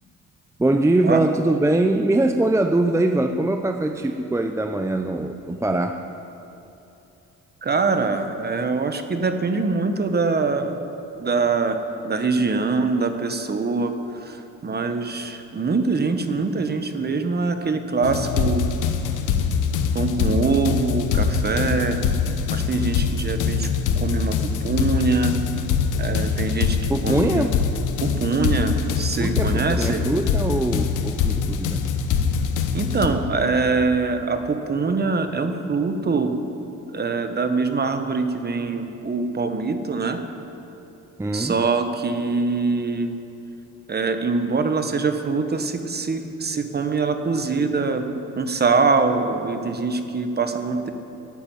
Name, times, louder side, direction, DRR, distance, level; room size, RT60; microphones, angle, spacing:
voice 1, 0.6-6.0 26.9-27.6 29.2-31.8 41.2-41.6, right 2 dB, 10° right, 6 dB, 0.6 m, -22 dB
voice 2, 7.6-10.8 11.2-11.8 12.0-13.9 14.2-18.6 19.9-22.0 22.5-23.7 24.0-25.3 26.0-26.8 27.0-27.5 28.0-30.0 32.7-36.4 36.9-40.2 41.3-43.1 43.9-48.0 48.4-50.9, right 4 dB, 35° right, 7 dB, 1.3 m, -23 dB
sound 1, 18.0-33.1, left 6 dB, 85° left, 1.1 m, -23 dB
13.0 x 8.9 x 9.2 m, 2.9 s
cardioid pair, 90°, 30 cm